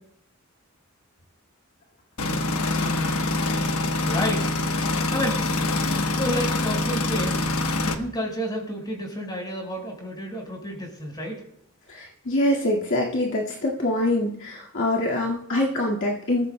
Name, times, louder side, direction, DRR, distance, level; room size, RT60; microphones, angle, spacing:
sound 1, 2.2-8.0, left 2 dB, 85° left, 1.1 m, -25 dB
voice 1, 2.8-3.2 4.0-4.5 5.1-5.4 6.1-7.4 7.8-11.4, equal, 20° left, 0 dB, 4.8 m, -30 dB
voice 2, 11.9-16.5, left 1 dB, 60° left, -3 dB, 1.9 m, -24 dB
25.5 x 14.5 x 2.2 m, 0.70 s
head